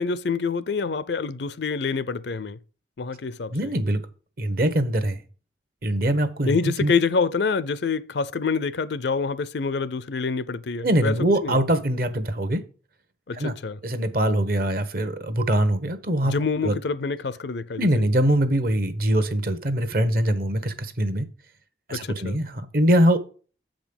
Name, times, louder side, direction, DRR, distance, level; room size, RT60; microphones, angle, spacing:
voice 1, 0.0-2.6 3.0-3.7 6.4-11.6 13.3-13.8 16.2-17.9 21.9-22.4, left 4 dB, 65° left, 0.5 m, -26 dB
voice 2, 3.5-4.0 4.4-5.2 5.8-6.9 10.8-12.6 13.3-13.5 13.8-16.3 16.6-16.8 17.8-21.3 21.9-23.2, right 1 dB, 50° right, 1.0 m, -23 dB
7.7 x 5.1 x 5.3 m
head